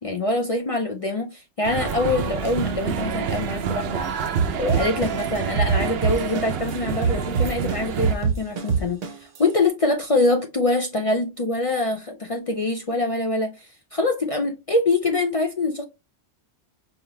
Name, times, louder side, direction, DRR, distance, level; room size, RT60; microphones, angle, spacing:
voice 1, 0.0-4.2 4.6-9.0 9.4-15.8, left 2 dB, 55° left, 0.4 m, -24 dB
sound 1, 1.6-8.1, right 7 dB, 65° right, 0.7 m, -28 dB
sound 2, 4.4-6.7 7.0-9.4, right 6 dB, 90° right, 1.2 m, -23 dB
4.9 x 2.5 x 3.1 m
omnidirectional pair, 1.2 m